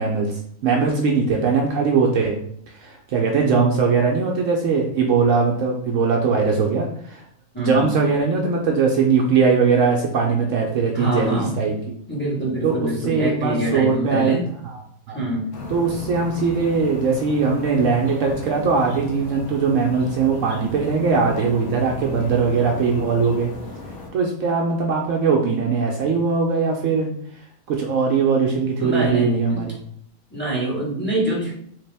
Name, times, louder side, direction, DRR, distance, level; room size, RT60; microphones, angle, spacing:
voice 1, 0.0-2.4 2.8-7.2 7.6-11.9 12.6-14.3 14.7-14.8 15.1-15.2 15.7-23.5 24.1-27.1 27.7-29.7, right 5 dB, 70° right, 0 dB, 0.9 m, -20 dB
voice 2, 7.5-7.9 10.9-11.6 12.1-14.4 15.1-15.6 28.8-29.7 30.3-31.5, right 1 dB, 10° left, -6 dB, 1.1 m, -25 dB
sound 1, 15.5-24.1, left 2 dB, 60° left, 1.0 m, -35 dB
3.3 x 2.8 x 3.3 m, 0.65 s
omnidirectional pair, 1.5 m